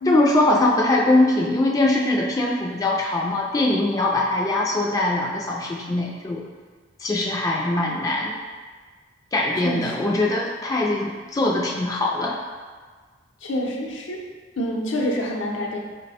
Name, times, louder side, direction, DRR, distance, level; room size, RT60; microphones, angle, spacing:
voice 1, 0.0-6.4 7.0-8.4 9.3-12.4, left 2 dB, 20° left, -2 dB, 0.3 m, -22 dB
voice 2, 9.6-10.1 13.4-14.3 14.6-15.8, equal, 80° left, -1 dB, 0.7 m, -27 dB
4.7 x 2.1 x 4.1 m, 1.5 s
head